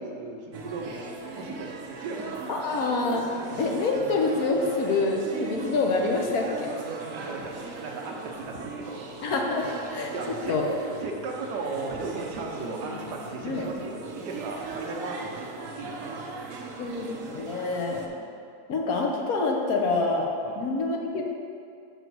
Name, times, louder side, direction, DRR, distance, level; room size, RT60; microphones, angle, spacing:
voice 1, 0.0-2.4 6.9-9.4 10.1-10.6 11.0-15.5 15.8-16.2 16.5-16.9 18.1-18.3 20.4-20.6, right 3 dB, 80° right, 0 dB, 1.5 m, -37 dB
sound 1, 0.5-18.1, right 4 dB, 60° right, 1.0 m, -39 dB
voice 2, 2.5-3.2 3.6-6.8 9.2-9.6 9.9-10.7 13.4-13.6 16.8-18.0 18.7-20.3 20.6-21.2, left 3 dB, 65° left, 0 dB, 1.3 m, -26 dB
6.5 x 5.0 x 6.1 m, 2.4 s
omnidirectional pair, 1.8 m